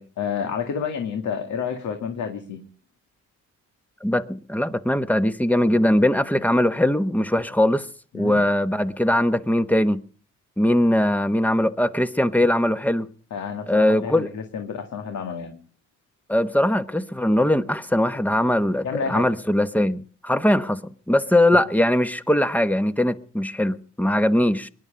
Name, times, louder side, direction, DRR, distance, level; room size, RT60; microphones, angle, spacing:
voice 1, 0.2-2.6 8.1-8.4 13.3-15.5 18.8-19.3, left 6 dB, 70° left, 2.1 m, -29 dB
voice 2, 4.0-7.9 8.1-10.0 10.6-13.1 13.7-14.3 16.3-20.8 21.1-24.7, left 1 dB, 5° left, 1.1 m, -21 dB
22.5 x 11.0 x 5.2 m
cardioid pair, 90°, 30 cm